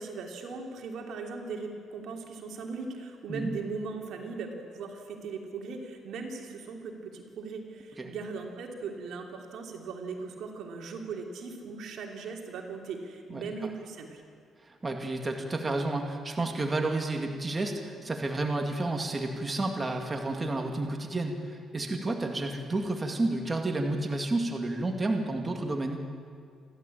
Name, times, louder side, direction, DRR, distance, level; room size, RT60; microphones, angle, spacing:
voice 1, 0.0-14.2, right 4 dB, 75° right, 2 dB, 3.0 m, -39 dB
voice 2, 13.3-13.7 14.6-26.0, right 2 dB, 25° right, 3 dB, 2.3 m, -31 dB
28.5 x 12.0 x 8.6 m, 2.1 s
cardioid pair, 90°, 0 cm